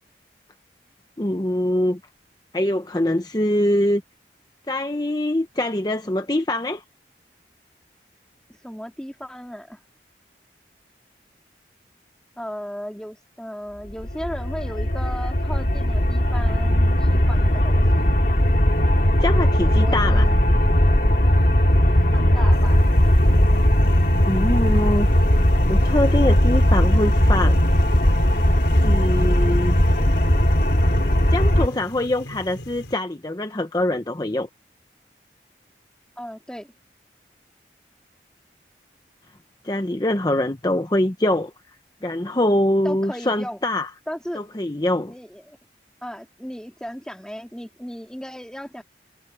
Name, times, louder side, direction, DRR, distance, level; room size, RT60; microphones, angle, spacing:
voice 1, 1.2-2.0 2.5-4.0 4.7-6.8 19.2-20.3 24.3-25.1 25.7-27.6 28.8-29.8 31.3-34.5 39.6-41.5 42.0-43.9 44.3-45.1, left 1 dB, 20° left, 0.8 m, -23 dB
voice 2, 8.5-9.8 12.4-18.1 19.5-20.5 22.1-22.8 36.2-36.7 42.8-43.6 44.1-44.4 45.1-45.6 46.0-48.8, equal, 5° left, 2.9 m, -35 dB
sound 1, 13.9-31.7, equal, 55° left, 2.4 m, -18 dB
sound 2, 22.5-32.9, left 1 dB, 80° left, 4.5 m, -39 dB
head